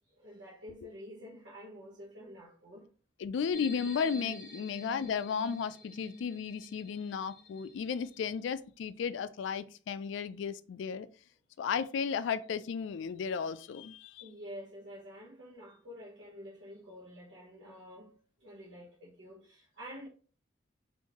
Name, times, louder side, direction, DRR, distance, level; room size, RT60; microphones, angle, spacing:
voice 1, 0.1-2.9 14.2-20.1, equal, 75° right, 0.8 m, -49 dB
voice 2, 3.2-11.1 11.6-14.2, left 6 dB, 75° left, 0.3 m, -34 dB
sound 1, 3.5-8.2, equal, 45° left, 0.9 m, -49 dB
3.7 x 2.6 x 2.9 m
head